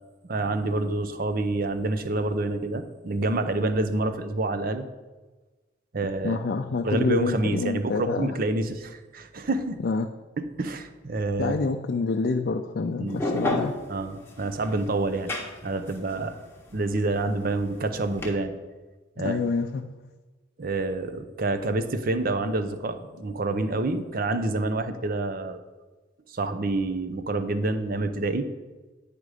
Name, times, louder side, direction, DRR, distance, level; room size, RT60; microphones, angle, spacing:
voice 1, 0.3-4.9 5.9-6.4 6.8-9.8 10.6-11.5 13.0-13.2 13.9-15.3 15.6-16.4 16.7-18.5 19.2-19.5 20.6-25.6 26.3-28.5, right 2 dB, 50° right, 10 dB, 0.6 m, -27 dB
voice 2, 6.2-8.4 9.8-10.1 11.4-13.8 19.2-19.8, left 4 dB, 50° left, 4 dB, 0.4 m, -27 dB
sound 1, 13.1-18.3, left 2 dB, 10° left, 1.1 m, -31 dB
9.6 x 5.0 x 4.9 m, 1.2 s
head